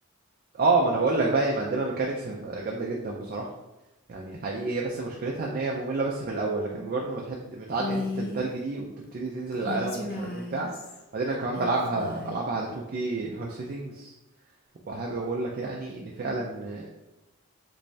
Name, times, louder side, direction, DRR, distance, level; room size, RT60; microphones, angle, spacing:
voice 1, 0.5-3.5 4.1-8.9 9.1-10.7 11.1-14.1 14.9-16.9, right 3 dB, 40° right, -1 dB, 0.4 m, -29 dB
Female speech woman speaking, 7.8-8.5 9.5-11.0 11.5-12.4, left 2 dB, 45° left, 0.5 m, -35 dB
3.3 x 3.0 x 2.6 m, 1.0 s
head